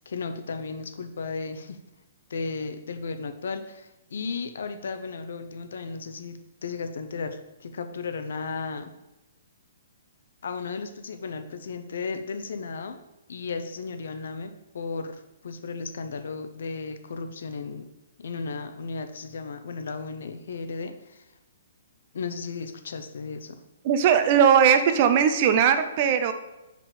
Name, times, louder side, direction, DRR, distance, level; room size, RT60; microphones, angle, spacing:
voice 1, 0.1-1.8 2.3-8.9 10.4-13.0 13.3-17.9 18.2-21.2 22.1-23.6, left 4 dB, 70° left, 8 dB, 0.9 m, -35 dB
voice 2, 23.8-26.3, right 8 dB, 35° right, 9 dB, 0.7 m, -19 dB
5.3 x 5.1 x 5.3 m, 0.97 s
hypercardioid pair, 155°, 0 cm